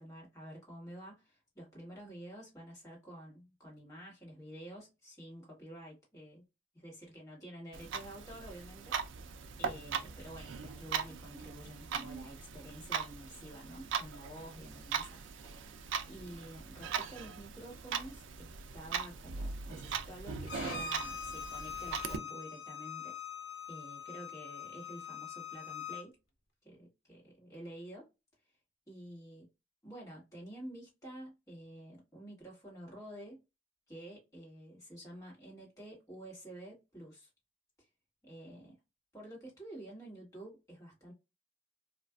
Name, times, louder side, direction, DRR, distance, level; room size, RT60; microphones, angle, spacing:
voice 1, 0.0-6.4 6.7-9.2 9.6-15.3 15.7-23.2 23.7-26.1 26.6-28.1 28.9-29.5 29.8-33.4 33.9-37.3 37.8-37.9 38.2-38.8 39.1-41.1, right 1 dB, 15° left, 1.4 m, -50 dB
Clock, 7.7-22.2, right 6 dB, 70° right, 0.4 m, -40 dB
Bowed string instrument, 20.5-26.0, left 6 dB, 80° left, 0.7 m, -43 dB
2.4 x 2.4 x 2.2 m
head